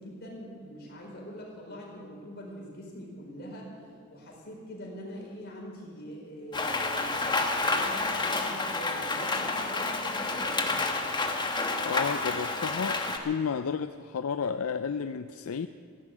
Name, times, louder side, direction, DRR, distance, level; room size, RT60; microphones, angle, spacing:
voice 1, 0.0-3.7 4.1-7.2 7.5-10.9, equal, 50° left, -2 dB, 4.5 m, -43 dB
Rain, 6.5-13.2, left 3 dB, 20° left, 1.2 m, -29 dB
voice 2, 11.8-15.7, left 6 dB, 80° left, 10 dB, 0.5 m, -32 dB
15.0 x 11.0 x 8.5 m, 2.3 s
head